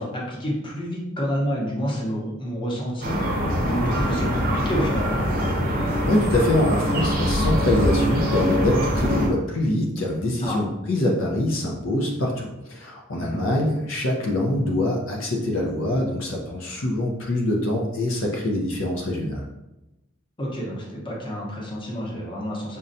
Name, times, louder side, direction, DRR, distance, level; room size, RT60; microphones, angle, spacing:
voice 1, 0.0-5.2 10.4-10.6 13.1-13.4 20.4-22.8, equal, 25° left, -4 dB, 0.8 m, -29 dB
sound 1, 3.0-9.3, equal, 45° right, 0.7 m, -23 dB
voice 2, 6.0-19.4, left 1 dB, 65° left, -1 dB, 0.6 m, -24 dB
5.2 x 2.2 x 2.6 m, 0.98 s
head